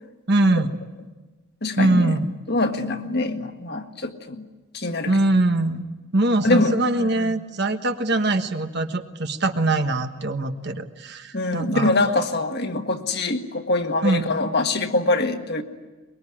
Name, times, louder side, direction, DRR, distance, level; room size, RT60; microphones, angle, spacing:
voice 1, 0.3-0.8 1.8-2.3 5.1-5.8 6.1-11.9 14.0-14.2, right 2 dB, 50° right, 7 dB, 1.4 m, -22 dB
voice 2, 1.6-2.1 2.5-4.5 4.7-5.1 6.4-7.3 11.3-15.6, left 2 dB, 50° left, 5 dB, 1.7 m, -24 dB
23.5 x 22.0 x 10.0 m, 1.2 s
head